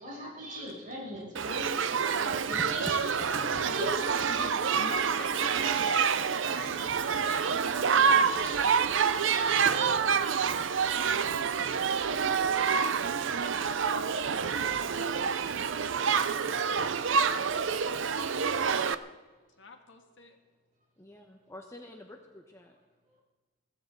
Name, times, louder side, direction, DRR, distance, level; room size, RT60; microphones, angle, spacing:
voice 1, 0.0-1.7 2.5-3.1 3.8-3.9 8.4-9.5, equal, 45° right, -4 dB, 6.6 m, -41 dB
voice 2, 1.0-1.8 2.5-4.2 4.6-5.3 9.5-11.9 21.0-22.8, left 1 dB, 15° left, 2 dB, 1.1 m, -48 dB
Shout / Human group actions, 1.4-19.0, right 6 dB, 80° right, 0.6 m, -27 dB
voice 3, 4.8-8.7 19.6-20.4, left 3 dB, 70° left, 4 dB, 1.8 m, -46 dB
22.5 x 16.0 x 3.9 m, 1.3 s
head